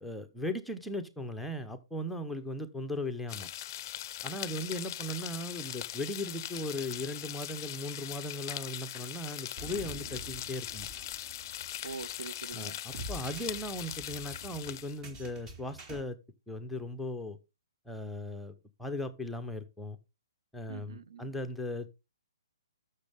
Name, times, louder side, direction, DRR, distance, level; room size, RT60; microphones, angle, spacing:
voice 1, 0.0-3.5 4.2-10.9 12.5-16.2 16.5-17.4 17.9-20.0 20.5-21.9, left 1 dB, ahead, 0.9 m, -38 dB
sound 1, 3.3-15.0, left 12 dB, 40° left, 0.5 m, -41 dB
sound 2, 9.6-16.0, right 1 dB, 20° right, 2.0 m, -47 dB
voice 2, 11.8-12.8 20.7-21.3, right 6 dB, 70° right, 0.6 m, -44 dB
13.0 x 6.5 x 3.6 m
hypercardioid pair, 140°, 3 cm